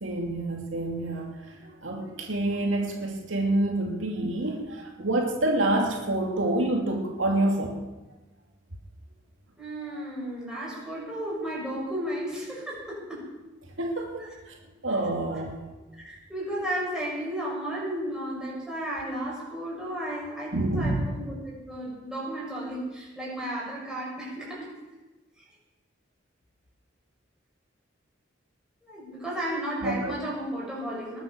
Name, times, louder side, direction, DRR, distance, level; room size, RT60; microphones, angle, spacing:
voice 1, 0.0-7.8 9.9-10.0 13.8-14.1 14.5-14.6 14.8-15.6 20.5-21.1 29.8-30.1, right 1 dB, 75° right, 0 dB, 2.5 m, -27 dB
voice 2, 9.6-13.3 15.9-24.7 28.8-31.2, right 1 dB, 5° right, -6 dB, 6.8 m, -33 dB
20.5 x 8.0 x 6.8 m, 1.1 s
head